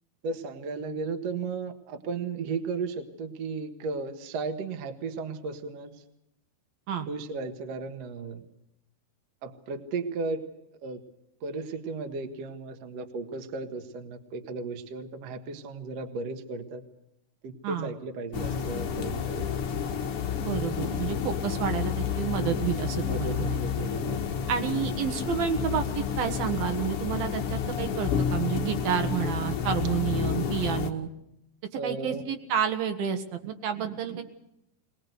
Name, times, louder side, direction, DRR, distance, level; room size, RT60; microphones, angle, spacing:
voice 1, 0.2-6.0 7.1-8.5 9.4-10.4 10.7-11.0 11.4-16.8 17.4-19.5 23.0-24.2 30.2-30.6 31.8-32.3 33.7-34.2, right 4 dB, 55° right, 6 dB, 2.1 m, -35 dB
sound 1, 18.3-30.9, left 7 dB, 65° left, 1.4 m, -30 dB
voice 2, 20.4-23.6 24.5-31.1 31.8-34.2, right 8 dB, 70° right, 7 dB, 3.1 m, -30 dB
21.5 x 20.5 x 8.0 m, 0.82 s
omnidirectional pair, 4.5 m